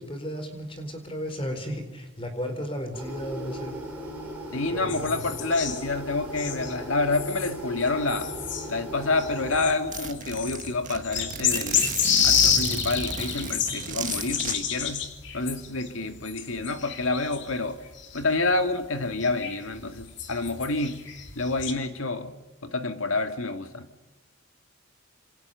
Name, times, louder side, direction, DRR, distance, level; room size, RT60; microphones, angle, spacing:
voice 1, 0.0-3.8 4.7-5.3, equal, 25° left, 4.2 m, -34 dB
sound 1, 2.9-9.6, equal, 10° right, 7.5 m, -38 dB
voice 2, 4.5-8.4 8.7-11.9 12.2-15.1 15.3-17.8 18.1-21.0 21.4-22.3 22.6-23.9, left 3 dB, 75° left, 2.0 m, -28 dB
sound 2, 4.9-17.6 17.8-18.4 19.1-21.7, left 8 dB, 55° left, 2.8 m, -29 dB
Zipper (clothing), 9.9-14.5, right 5 dB, 35° right, 1.8 m, -34 dB
27.5 x 26.5 x 6.9 m
head